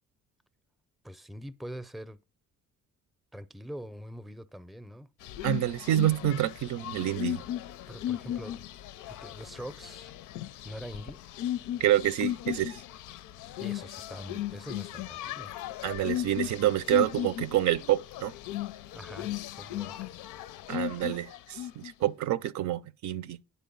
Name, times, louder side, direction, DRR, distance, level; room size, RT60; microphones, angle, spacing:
voice 1, 1.0-2.2 3.3-5.1 7.9-8.6 9.1-10.1 10.6-11.2 13.6-15.5 18.9-20.1, equal, ahead, 0.5 m, -43 dB
sound 1, 5.2-21.9, left 12 dB, 90° left, 0.5 m, -36 dB
voice 2, 5.4-7.4 11.8-12.8 15.8-18.3 20.7-23.4, right 13 dB, 70° right, 0.5 m, -27 dB
9.4 x 4.2 x 5.4 m
cardioid pair, 90°, 30 cm